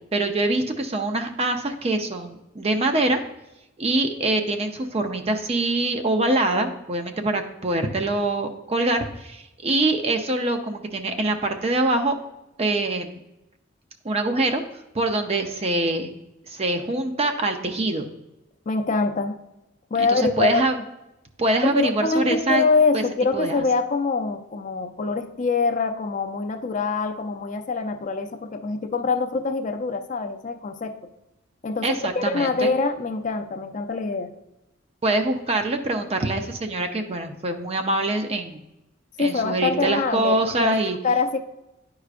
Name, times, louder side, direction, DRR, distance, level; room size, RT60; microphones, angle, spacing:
voice 1, 0.1-3.2 3.8-12.1 12.6-13.2 14.0-14.6 14.9-16.1 16.5-18.1 20.0-20.8 21.4-22.6 22.9-23.0 23.3-23.6 31.8-32.7 35.0-38.6 39.2-41.0, right 2 dB, 30° right, 5 dB, 0.6 m, -24 dB
voice 2, 18.7-19.4 19.9-20.6 21.6-31.0 31.6-34.3 39.2-41.4, left 4 dB, 40° left, 7 dB, 0.5 m, -24 dB
10.0 x 4.8 x 2.4 m, 0.93 s
head